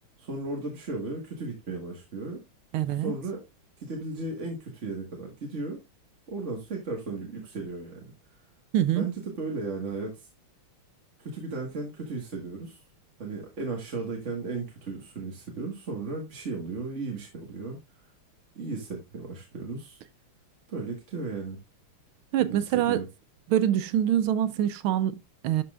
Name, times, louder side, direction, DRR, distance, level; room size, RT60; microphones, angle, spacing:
voice 1, 0.2-2.4 3.0-3.4 3.8-5.8 6.3-8.1 8.9-10.3 11.2-12.8 13.2-17.8 18.5-20.0 20.7-21.6 22.5-23.0, right 3 dB, 35° right, 1.6 m, -35 dB
voice 2, 2.7-3.2 8.7-9.1 22.3-23.0 23.5-25.6, right 11 dB, 80° right, 1.4 m, -25 dB
11.5 x 5.5 x 2.4 m
omnidirectional pair, 2.4 m